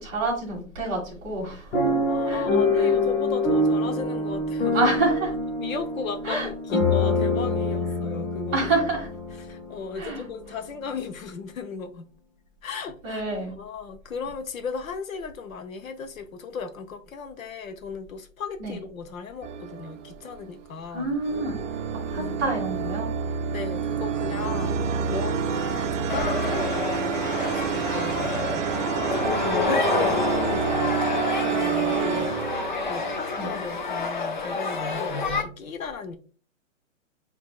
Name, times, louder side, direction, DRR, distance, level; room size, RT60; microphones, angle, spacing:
voice 1, 0.0-2.0 2.2-2.5 2.8-3.0 4.7-5.3 6.2-6.5 8.5-9.1 9.9-10.2 13.0-13.5 18.6-18.8 20.9-21.6 22.1-23.1 29.4-29.8 33.4-33.5, right 3 dB, 15° right, 1.2 m, -28 dB
sound 1, 1.7-9.8 10.4-10.5 10.8-11.1, left 2 dB, 65° left, 1.2 m, -25 dB
voice 2, 2.1-4.9 5.6-8.7 9.4-12.0 12.6-13.2 13.6-21.1 22.2-22.5 23.5-29.2 30.0-36.2, left 5 dB, 80° left, 0.9 m, -36 dB
sound 2, 19.4-20.6 21.2-33.9, right 7 dB, 70° right, 0.5 m, -28 dB
sound 3, 26.1-35.4, left 4 dB, 40° left, 0.4 m, -28 dB
7.5 x 2.9 x 2.3 m
hypercardioid pair, 170°, 40 cm